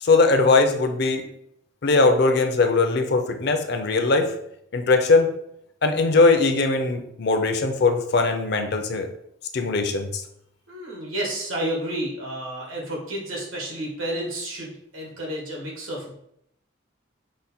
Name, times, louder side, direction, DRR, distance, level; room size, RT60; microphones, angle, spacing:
voice 1, 0.0-1.3 1.8-4.3 4.7-5.3 5.8-9.1 9.5-10.1, left 3 dB, 55° left, 5 dB, 0.5 m, -20 dB
voice 2, 10.7-16.1, right 1 dB, 90° right, -2 dB, 1.5 m, -31 dB
5.1 x 2.2 x 4.2 m, 0.74 s
head